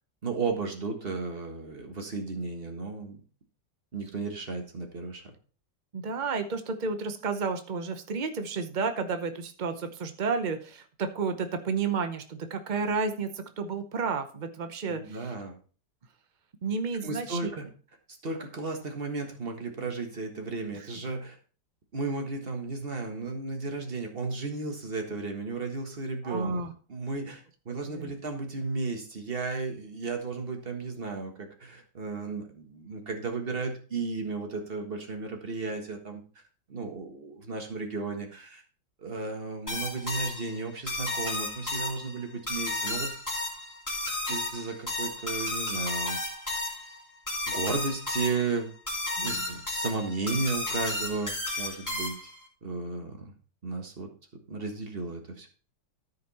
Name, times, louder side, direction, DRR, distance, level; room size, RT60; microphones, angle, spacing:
voice 1, 0.2-3.2 3.9-5.3 14.9-15.6 16.9-17.7 18.2-21.4 21.9-26.6 26.9-36.2 36.7-38.6 39.0-43.1 44.3-46.2 47.5-48.7 49.2-52.1 52.6-53.3 53.6-54.1 54.5-55.5, right 3 dB, 30° right, 4 dB, 1.6 m, -34 dB
voice 2, 5.9-15.3 16.6-17.5 26.2-26.7 27.9-28.1 49.2-49.5, right 4 dB, 75° right, 8 dB, 0.4 m, -31 dB
sound 1, 39.7-52.4, left 2 dB, 10° left, 2.7 m, -33 dB
13.5 x 5.2 x 4.2 m, 0.39 s
omnidirectional pair, 2.1 m